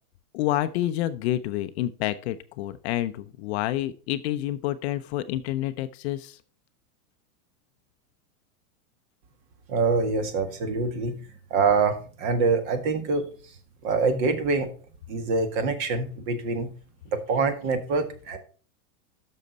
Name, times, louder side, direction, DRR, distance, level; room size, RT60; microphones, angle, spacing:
voice 1, 0.3-6.4, left 14 dB, 45° left, 12 dB, 0.5 m, -28 dB
voice 2, 9.7-11.2 11.5-13.3 13.8-14.7 15.1-16.7 17.1-18.4, right 4 dB, 45° right, 8 dB, 1.8 m, -25 dB
12.0 x 6.5 x 4.0 m, 0.40 s
supercardioid pair, 150°, 47 cm